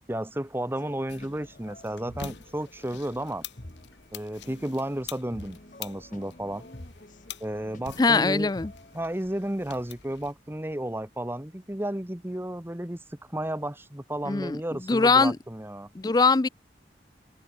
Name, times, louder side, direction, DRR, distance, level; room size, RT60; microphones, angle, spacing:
voice 1, 0.1-3.4 4.1-6.7 7.4-8.5 8.9-15.9, right 1 dB, 15° right, 1.1 m, -33 dB
sound 1, 0.8-9.0, left 1 dB, 45° left, 2.0 m, -48 dB
sound 2, 1.1-10.3, left 8 dB, 90° left, 1.6 m, -46 dB
voice 2, 8.0-8.7 14.3-14.6 14.9-15.4 16.0-16.5, left 4 dB, 20° left, 0.4 m, -21 dB
head